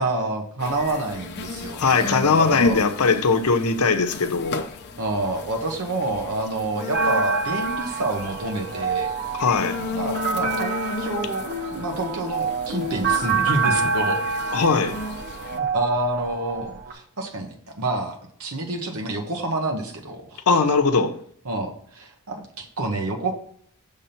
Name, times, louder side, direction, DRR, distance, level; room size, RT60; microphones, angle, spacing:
voice 1, 0.0-2.8 5.0-9.1 9.9-10.7 11.0-14.2 15.5-20.6 21.4-23.3, right 2 dB, 90° right, 1.1 m, -28 dB
sound 1, 0.6-15.6, left 3 dB, 50° left, 0.7 m, -34 dB
voice 2, 1.8-4.6 9.4-9.8 14.5-15.0 20.5-21.2, left 4 dB, 90° left, 0.8 m, -20 dB
sound 2, 6.9-16.9, right 4 dB, 45° right, 1.1 m, -27 dB
6.8 x 3.6 x 5.8 m
head